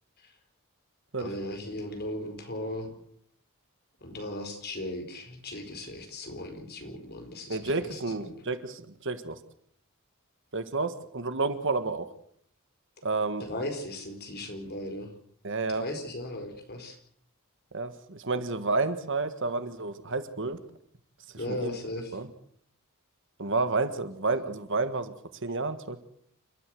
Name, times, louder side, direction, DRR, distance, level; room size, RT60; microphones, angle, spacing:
voice 1, 1.2-2.9 4.0-8.3 13.4-15.1 15.7-17.0 21.4-22.2, left 1 dB, 50° left, 5 dB, 4.7 m, -37 dB
voice 2, 7.5-9.3 10.5-12.1 13.0-13.5 15.4-15.8 17.7-20.6 21.5-21.8 22.1-22.3 23.4-25.1 25.4-26.0, right 3 dB, 60° right, 10 dB, 1.7 m, -30 dB
29.5 x 13.0 x 7.8 m, 0.65 s
head